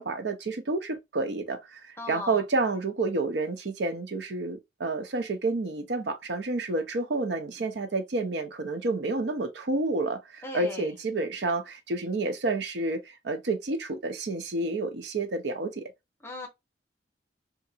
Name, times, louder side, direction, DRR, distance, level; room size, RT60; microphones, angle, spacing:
voice 1, 0.0-15.9, right 3 dB, 75° right, 0.6 m, -30 dB
voice 2, 2.0-2.4 10.4-10.9 16.2-16.5, left 2 dB, 15° left, 0.8 m, -37 dB
2.8 x 2.5 x 2.4 m
head